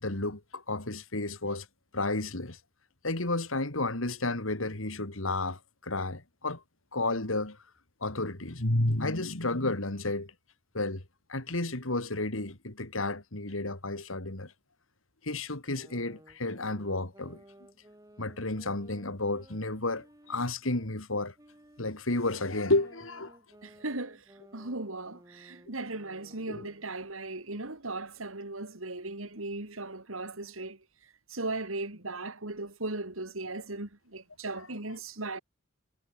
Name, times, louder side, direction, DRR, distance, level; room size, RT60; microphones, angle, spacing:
voice 1, 0.0-1.7 1.9-2.6 3.0-6.6 6.9-7.6 8.0-10.3 10.7-11.0 11.3-14.5 15.2-17.4 18.2-21.3 21.8-23.4 26.5-26.7, left 2 dB, 80° left, 3.3 m, -31 dB
sound 1, 15.7-20.9 21.4-27.0, right 1 dB, 15° right, 6.0 m, -57 dB
voice 2, 23.6-35.4, right 2 dB, 85° right, 3.3 m, -38 dB
head